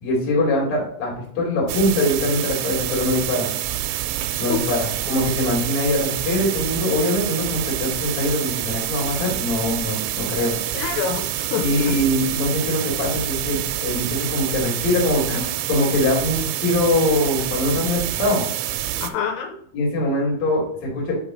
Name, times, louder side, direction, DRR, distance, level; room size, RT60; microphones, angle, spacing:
voice 1, 0.0-3.5 4.4-10.5 11.6-18.4 19.7-21.1, left 1 dB, 40° left, -2 dB, 3.2 m, -22 dB
sound 1, 1.7-19.1, right 12 dB, 85° right, 3.3 m, -27 dB
voice 2, 4.5-4.8 10.7-12.0 19.0-19.6, left 7 dB, 90° left, 4 dB, 3.6 m, -27 dB
6.8 x 5.5 x 3.8 m, 0.66 s
omnidirectional pair, 5.9 m